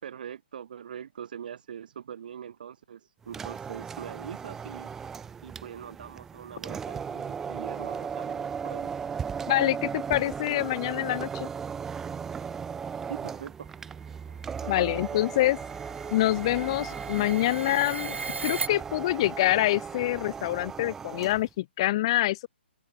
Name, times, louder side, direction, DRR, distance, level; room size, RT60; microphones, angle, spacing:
voice 1, 0.0-4.9 5.4-8.9 13.1-13.7 14.6-15.2, right 8 dB, 50° right, 3.7 m, -42 dB
sound 1, 3.2-21.5, right 6 dB, 5° right, 0.6 m, -37 dB
voice 2, 9.5-11.5 14.7-15.6 16.1-18.2 18.4-22.5, left 16 dB, 30° left, 1.1 m, -26 dB
sound 2, 13.9-18.7, right 5 dB, 85° right, 1.8 m, -38 dB
hypercardioid pair, 165°, 6 cm